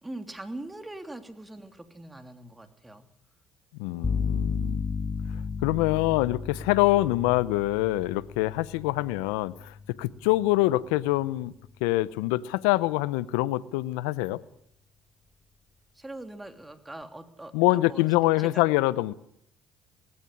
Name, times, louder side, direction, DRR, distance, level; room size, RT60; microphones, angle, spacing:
voice 1, 0.0-3.1 3.9-4.1 15.9-18.1 18.4-18.6, right 2 dB, 15° right, 3.0 m, -42 dB
voice 2, 3.8-4.8 5.6-11.5 11.8-14.4 17.5-19.1, left 18 dB, 85° left, 0.7 m, -25 dB
sound 1, 4.0-11.8, left 5 dB, 30° left, 1.3 m, -34 dB
18.5 x 16.5 x 9.9 m
supercardioid pair, 70°, 0 cm